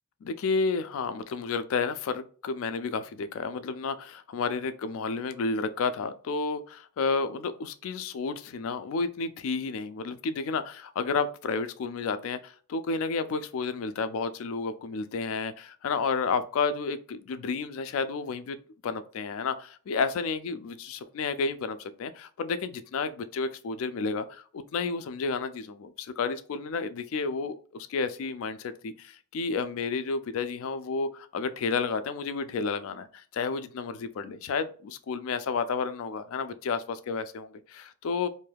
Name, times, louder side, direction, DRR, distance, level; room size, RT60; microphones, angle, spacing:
voice 1, 0.2-18.6 18.8-38.3, left 4 dB, 65° left, 0.3 m, -31 dB
2.6 x 2.3 x 3.3 m
head